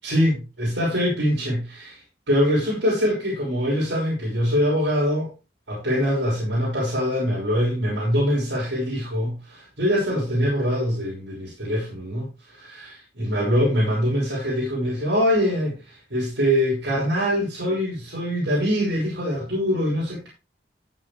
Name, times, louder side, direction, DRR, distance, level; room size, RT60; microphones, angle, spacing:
voice 1, 0.0-2.0 2.3-5.3 5.7-20.3, equal, 75° right, -6 dB, 6.2 m, -23 dB
14.5 x 7.6 x 3.4 m, 0.29 s
head